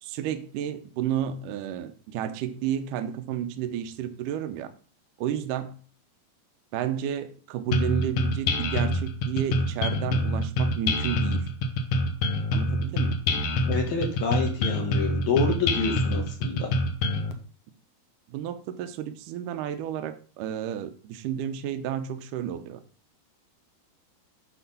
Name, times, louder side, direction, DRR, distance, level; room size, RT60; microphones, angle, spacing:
voice 1, 0.0-4.7 5.2-5.8 6.7-11.5 12.5-13.2 18.3-22.8, right 10 dB, 75° right, 2.0 m, -31 dB
sound 1, 7.7-17.3, left 1 dB, 80° left, 1.4 m, -26 dB
voice 2, 13.7-16.7, left 4 dB, 60° left, 2.3 m, -28 dB
8.7 x 5.4 x 5.5 m
omnidirectional pair, 4.5 m